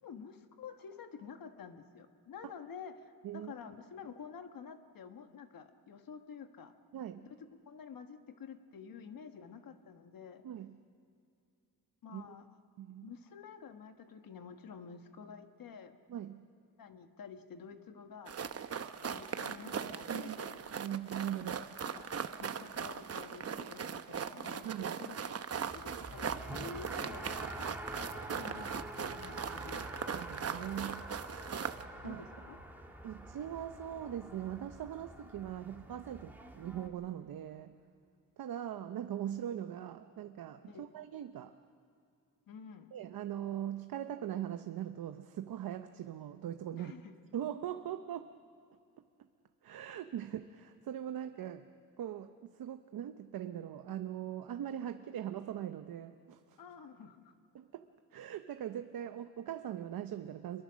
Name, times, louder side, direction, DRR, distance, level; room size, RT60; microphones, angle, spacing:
voice 1, 0.0-6.7 7.6-10.4 12.0-12.5 13.0-15.9 16.8-18.3 19.0-20.5 21.2-21.5 21.8-27.3 28.3-29.9 32.0-32.6 40.6-40.9 42.5-42.9 46.7-47.1 56.6-57.3, left 6 dB, 75° left, 7 dB, 1.5 m, -50 dB
voice 2, 6.9-7.3 10.4-10.8 12.1-12.2 12.8-13.1 16.1-16.5 20.1-20.4 20.7-21.7 24.6-25.0 29.4-29.7 30.1-31.1 32.0-32.3 33.0-37.8 38.4-41.5 42.9-46.9 47.3-48.3 49.6-51.7 52.0-56.6 57.5-60.6, right 10 dB, 85° right, 8 dB, 0.8 m, -41 dB
sound 1, 18.3-31.8, right 7 dB, 45° right, 0.9 m, -40 dB
Race car auto racing, 25.5-36.9, right 1 dB, 5° right, 2.4 m, -46 dB
27.0 x 22.5 x 6.3 m, 2.6 s
cardioid pair, 105°, 34 cm